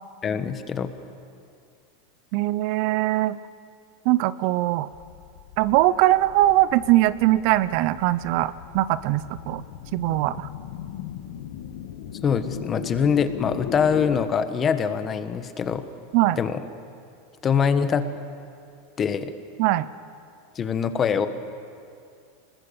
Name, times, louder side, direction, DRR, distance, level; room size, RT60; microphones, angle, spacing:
voice 1, 0.2-0.9 12.2-15.8 16.4-16.6 17.4-18.1 19.0-19.3 20.5-21.3, left 6 dB, 25° left, 10 dB, 1.2 m, -23 dB
voice 2, 2.3-3.4 4.0-4.9 5.6-9.6 9.9-10.5 16.1-16.4 19.6-19.9, right 16 dB, 55° right, 16 dB, 0.6 m, -21 dB
sound 1, 4.9-14.2, left 10 dB, 70° left, 1.4 m, -38 dB
26.5 x 20.5 x 7.1 m, 2.4 s
supercardioid pair, 140°, 0 cm